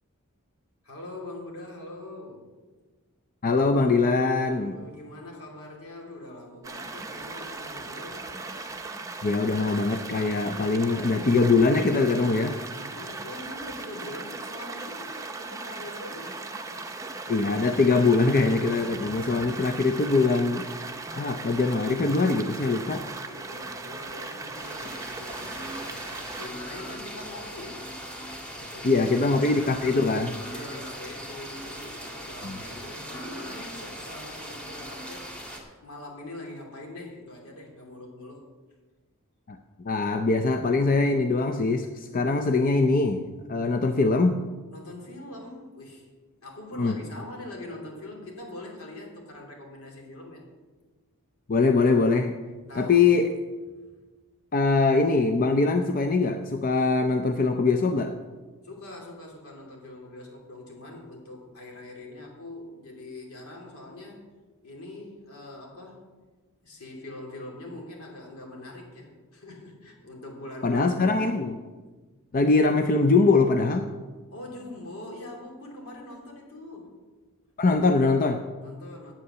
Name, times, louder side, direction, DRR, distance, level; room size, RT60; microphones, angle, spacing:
voice 1, 0.8-2.4 4.5-8.3 12.7-16.4 16.6-17.0 23.2-27.8 28.6-29.0 30.4-35.3 35.8-38.4 44.7-46.1 46.4-50.5 52.6-53.1 58.6-64.2 64.6-66.1 66.6-71.2 74.3-76.9 78.6-79.1, left 1 dB, 75° left, -1 dB, 2.9 m, -43 dB
voice 2, 3.4-4.8 9.2-12.6 17.3-20.7 21.1-23.0 28.8-30.3 32.4-32.6 39.5-39.6 39.8-44.4 46.8-47.0 51.5-52.4 52.8-53.3 54.5-58.1 70.6-71.6 72.3-73.9 77.6-78.4, left 3 dB, 40° left, 6 dB, 0.5 m, -22 dB
sound 1, 6.6-26.5, right 3 dB, 15° right, 0.7 m, -38 dB
sound 2, 24.5-35.6, equal, 5° left, 1.8 m, -39 dB
8.7 x 8.3 x 6.9 m, 1.3 s
head